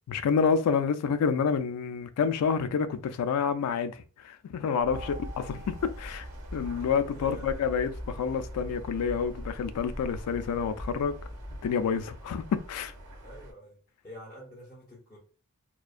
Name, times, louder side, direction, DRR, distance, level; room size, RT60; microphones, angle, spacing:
voice 1, 0.1-4.0 4.2-5.1 5.5-6.3 6.5-11.2 11.6-12.9, left 6 dB, 85° left, 0.3 m, -28 dB
Mallet percussion, 4.8-7.0, right 1 dB, 25° right, 0.7 m, -50 dB
sound 1, 4.8-11.7, equal, 40° right, 1.3 m, -41 dB
voice 2, 4.9-5.2 6.8-7.7 13.2-13.8 14.0-15.2, equal, 15° left, 0.6 m, -47 dB
sound 2, 4.9-13.5, equal, 70° right, 1.3 m, -47 dB
2.4 x 2.2 x 2.3 m
head